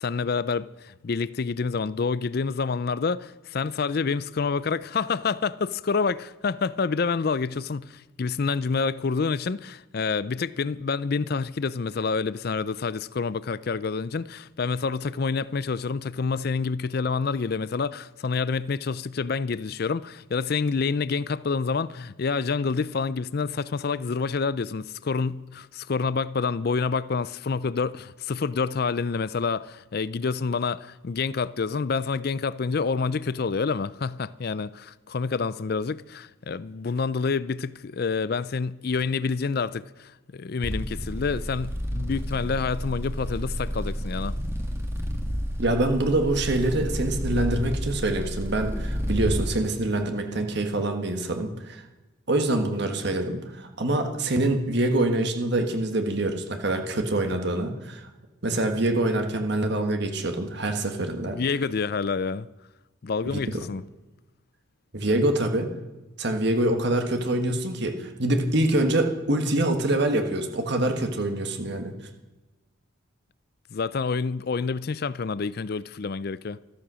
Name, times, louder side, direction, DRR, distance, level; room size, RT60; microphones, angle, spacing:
voice 1, 0.0-44.4 61.3-62.5 63.0-63.8 73.7-76.6, left 5 dB, 50° left, 0.4 m, -28 dB
sound 1, 40.6-49.5, equal, 10° right, 1.8 m, -30 dB
voice 2, 45.6-51.8 52.3-58.1 58.4-61.4 63.3-63.4 64.9-65.7 66.2-71.9, right 1 dB, 55° right, 1.6 m, -25 dB
14.0 x 13.5 x 6.3 m
head